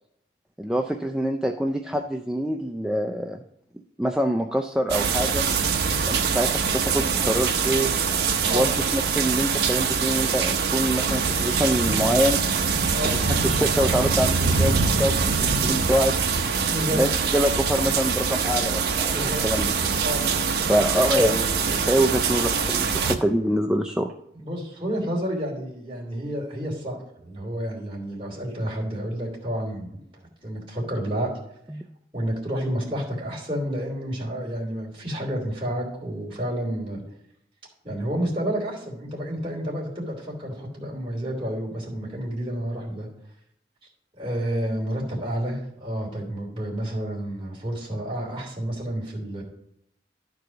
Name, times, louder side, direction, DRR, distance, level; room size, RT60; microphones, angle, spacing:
voice 1, 0.6-3.4 4.0-5.4 6.1-8.0 8.4-12.4 13.0-16.1 16.9-19.7 20.6-24.1 31.7-31.8, equal, 5° right, 3 dB, 0.3 m, -25 dB
sound 1, 4.9-23.2, right 5 dB, 65° right, 0.7 m, -24 dB
voice 2, 16.7-17.0 19.1-19.4 20.0-20.2 24.3-30.0 30.4-31.3 32.1-37.0 37.8-43.1 44.2-49.4, right 1 dB, 30° right, -2 dB, 3.0 m, -30 dB
12.0 x 4.8 x 5.0 m, 0.75 s
head